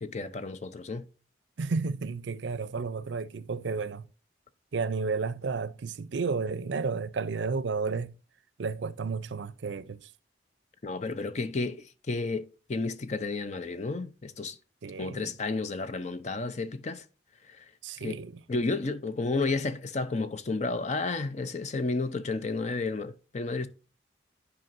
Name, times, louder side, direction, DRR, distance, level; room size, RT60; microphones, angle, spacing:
voice 1, 0.0-1.1 10.8-14.6 15.0-17.0 17.5-17.7 18.0-18.2 18.5-23.7, left 3 dB, 35° left, 0.5 m, -32 dB
voice 2, 1.6-4.1 4.7-8.2 8.6-10.1 14.8-15.3 17.8-18.4, right 4 dB, 75° right, 0.5 m, -32 dB
10.5 x 4.9 x 2.5 m
head